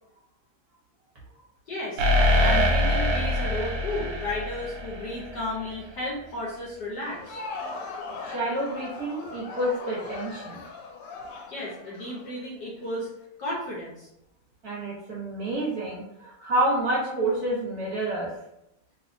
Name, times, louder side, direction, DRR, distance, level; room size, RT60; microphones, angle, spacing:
voice 1, 1.7-2.0 2.4-7.4 11.5-13.1 13.4-14.1, left 1 dB, 65° left, -5 dB, 1.1 m, -33 dB
sound 1, 2.0-5.6, left 1 dB, 85° right, 1.5 m, -24 dB
Crowd, 7.0-12.9, left 3 dB, 85° left, 1.5 m, -39 dB
voice 2, 8.2-10.6 14.6-18.3, right 1 dB, 55° right, -6 dB, 1.1 m, -28 dB
3.4 x 3.0 x 2.5 m, 0.82 s
omnidirectional pair, 2.4 m